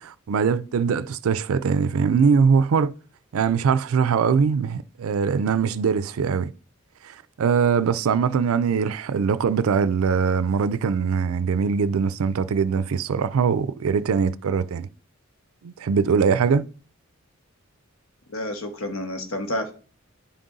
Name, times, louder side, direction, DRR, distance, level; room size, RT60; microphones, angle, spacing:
voice 1, 0.0-2.9 3.3-6.5 7.0-14.9 15.6-16.6, right 6 dB, 80° right, 0.4 m, -22 dB
voice 2, 18.3-19.7, left 1 dB, 75° left, 1.0 m, -29 dB
10.0 x 4.0 x 3.7 m
head